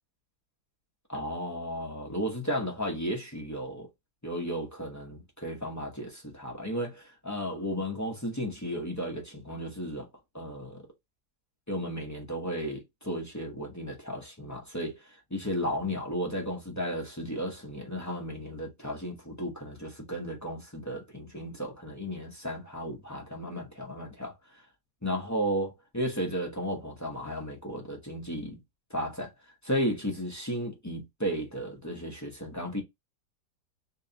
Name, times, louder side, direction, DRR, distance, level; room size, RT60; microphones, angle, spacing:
voice 1, 1.1-3.9 4.2-10.1 10.3-10.8 11.7-24.3 25.0-28.6 28.9-29.3 29.6-32.8, equal, 20° left, 0.4 m, -34 dB
3.1 x 2.8 x 3.9 m
omnidirectional pair, 2.1 m